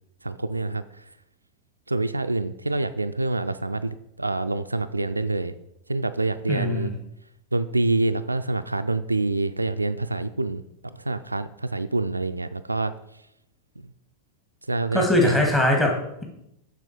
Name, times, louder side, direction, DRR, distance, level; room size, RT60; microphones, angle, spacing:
voice 1, 0.2-1.0 1.9-5.5 5.9-6.9 7.5-10.6 11.0-12.9 13.8-13.9 14.7-15.5, right 2 dB, 85° right, 10 dB, 0.3 m, -26 dB
voice 2, 6.5-6.9 14.9-16.2, left 1 dB, 15° left, 0 dB, 2.2 m, -22 dB
6.9 x 6.1 x 5.0 m, 0.81 s
figure-of-eight pair, 90°, 0 cm